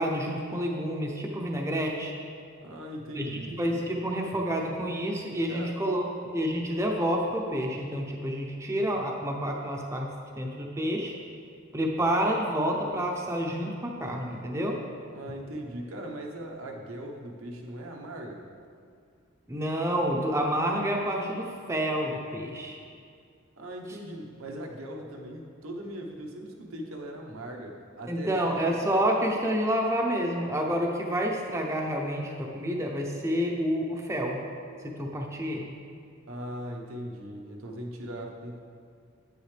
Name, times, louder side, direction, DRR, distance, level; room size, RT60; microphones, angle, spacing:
voice 1, 0.0-2.1 3.2-6.1 6.3-10.1 10.4-11.2 11.7-14.8 19.5-22.8 28.1-34.4 34.8-35.7, equal, 15° right, 0 dB, 0.7 m, -29 dB
voice 2, 2.6-3.6 5.5-5.8 15.1-18.4 23.6-28.8 36.3-38.6, right 1 dB, 85° right, 1 dB, 1.1 m, -39 dB
9.4 x 9.2 x 3.4 m, 2.3 s
head